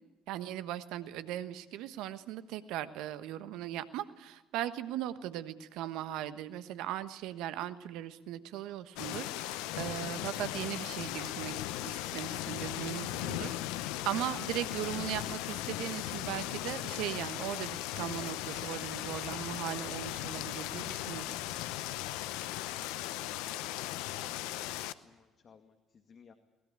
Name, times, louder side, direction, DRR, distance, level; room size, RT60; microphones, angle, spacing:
voice 1, 0.3-21.4, right 12 dB, 70° right, 12 dB, 1.3 m, -38 dB
sound 1, 9.0-24.9, left 15 dB, 75° left, 0.8 m, -37 dB
voice 2, 22.6-26.3, left 6 dB, 45° left, 7 dB, 2.0 m, -64 dB
23.0 x 20.0 x 8.6 m, 1.1 s
hypercardioid pair, 55°, 0 cm